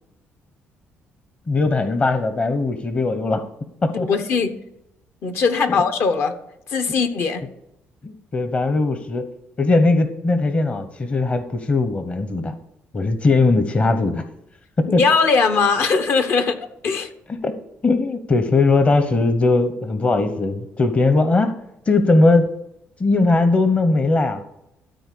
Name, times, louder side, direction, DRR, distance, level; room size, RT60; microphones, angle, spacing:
voice 1, 1.5-3.4 3.8-4.1 5.6-5.8 8.0-9.3 9.6-12.5 12.9-14.2 14.8-15.0 17.4-17.5 17.8-21.5 21.9-22.5 23.0-24.4, left 3 dB, 30° left, 8 dB, 0.9 m, -19 dB
voice 2, 3.9-4.5 5.2-6.3 6.7-7.4 14.9-17.1, left 4 dB, 60° left, 8 dB, 1.2 m, -20 dB
13.0 x 4.4 x 8.4 m, 0.83 s
cardioid pair, 120°, 4 cm